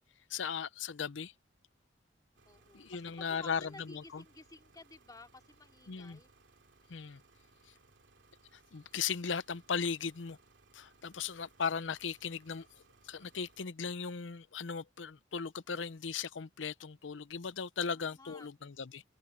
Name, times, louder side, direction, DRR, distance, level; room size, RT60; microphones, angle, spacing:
voice 1, 0.3-1.3 2.7-4.2 5.9-6.2 6.9-7.2 8.7-10.4 10.7-12.7 13.0-19.0, left 6 dB, 85° left, 0.7 m, -37 dB
sound 1, 2.3-13.7, right 3 dB, 85° right, 2.7 m, -65 dB
voice 2, 2.5-6.3 17.9-18.5, left 3 dB, 20° left, 3.0 m, -54 dB
open air
head